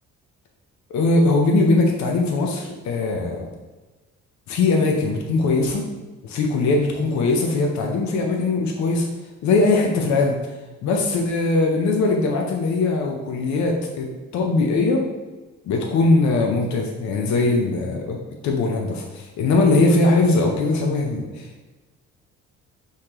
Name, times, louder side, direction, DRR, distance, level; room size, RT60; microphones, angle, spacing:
voice 1, 0.9-3.5 4.5-5.8 6.2-9.1 9.4-10.4 10.8-15.0 15.7-18.2 18.4-21.5, left 3 dB, 75° left, 1 dB, 0.6 m, -20 dB
5.6 x 3.2 x 2.9 m, 1.2 s
cardioid pair, 155°, 29 cm